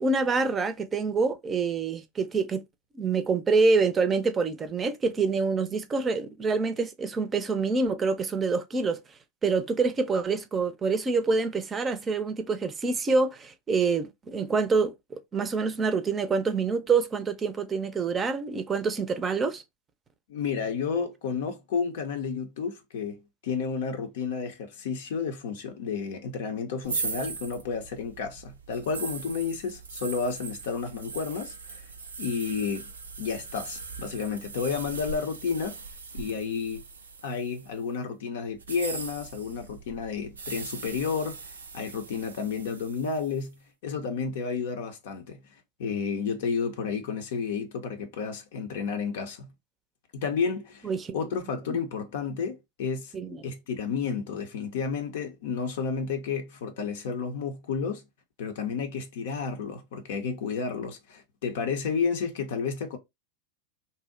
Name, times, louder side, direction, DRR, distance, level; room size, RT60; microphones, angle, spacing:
voice 1, 0.0-2.6 2.9-9.0 9.4-14.9 15.3-19.6 50.8-51.2 51.7-51.8 53.1-53.4, right 4 dB, 25° right, 0.5 m, -26 dB
voice 2, 20.3-31.8 32.2-32.9 33.2-35.8 36.1-36.8 37.2-41.4 41.7-43.5 43.8-45.4 45.8-49.5 50.1-53.1 53.4-58.0 58.4-63.0, left 5 dB, 70° left, 0.6 m, -31 dB
sound 1, 26.8-37.8 38.5-43.4, right 4 dB, 90° right, 0.5 m, -40 dB
2.7 x 2.0 x 3.7 m
hypercardioid pair, 95°, 0 cm